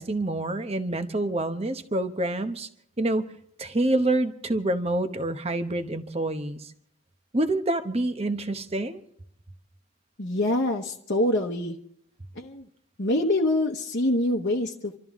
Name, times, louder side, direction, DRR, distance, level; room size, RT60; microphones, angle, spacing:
voice 1, 0.0-2.7 3.0-3.3 3.6-6.7 7.3-9.0, right 1 dB, 25° right, 9 dB, 0.9 m, -27 dB
voice 2, 10.2-11.8 12.3-12.7 13.0-15.0, left 1 dB, 50° left, -1 dB, 1.0 m, -25 dB
27.5 x 13.0 x 3.6 m, 0.69 s
head